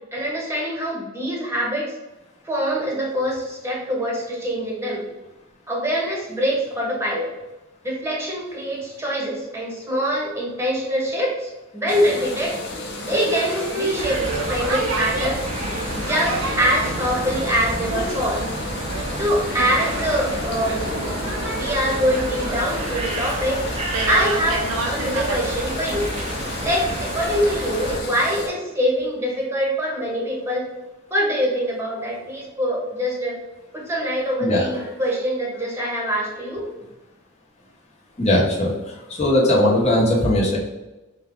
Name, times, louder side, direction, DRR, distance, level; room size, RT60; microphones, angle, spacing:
voice 1, 0.1-1.9 2.4-5.0 5.7-7.3 7.8-12.6 13.0-15.4 15.9-18.4 19.1-20.9 21.5-23.6 24.1-26.1 26.6-30.6 31.1-33.4 33.7-36.6, equal, 15° right, -3 dB, 1.1 m, -24 dB
sound 1, 11.9-28.5, left 2 dB, 55° left, 0.8 m, -33 dB
Boat Water vehicle, 13.0-26.1, right 3 dB, 90° right, 0.7 m, -31 dB
sound 2, 14.0-28.0, right 1 dB, 30° right, 0.5 m, -30 dB
voice 2, 38.2-40.6, left 1 dB, 30° left, -3 dB, 1.1 m, -19 dB
4.4 x 2.3 x 3.7 m, 1.0 s
head